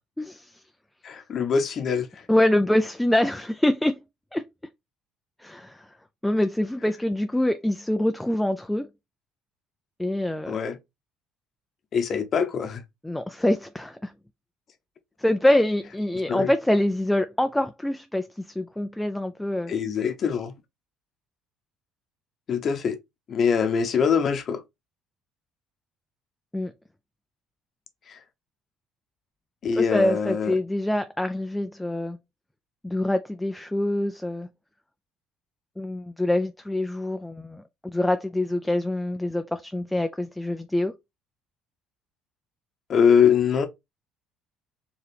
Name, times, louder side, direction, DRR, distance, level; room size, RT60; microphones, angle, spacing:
voice 1, 0.2-0.6 2.3-4.0 4.3-4.5 5.4-5.9 6.2-8.9 10.0-10.6 13.0-14.1 15.2-19.7 26.5-26.7 29.7-32.2 32.8-34.5 35.8-41.0, left 1 dB, 5° left, 0.3 m, -25 dB
voice 2, 1.0-2.1 10.5-10.8 11.9-12.8 16.3-16.5 19.7-20.5 22.5-23.0 23.3-24.6 29.6-30.5 42.9-43.7, left 6 dB, 40° left, 0.8 m, -23 dB
4.7 x 2.8 x 3.2 m
cardioid pair, 140°, 0 cm